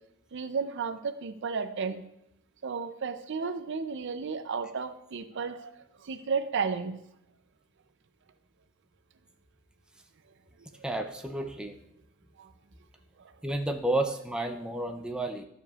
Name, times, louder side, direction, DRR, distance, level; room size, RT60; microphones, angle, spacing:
voice 1, 0.3-2.1 2.6-5.7 6.0-7.0 14.6-14.7, right 5 dB, 60° right, 10 dB, 0.5 m, -33 dB
voice 2, 10.8-11.8 13.4-15.4, right 1 dB, 5° right, 4 dB, 0.5 m, -31 dB
12.0 x 6.8 x 2.4 m, 0.80 s
head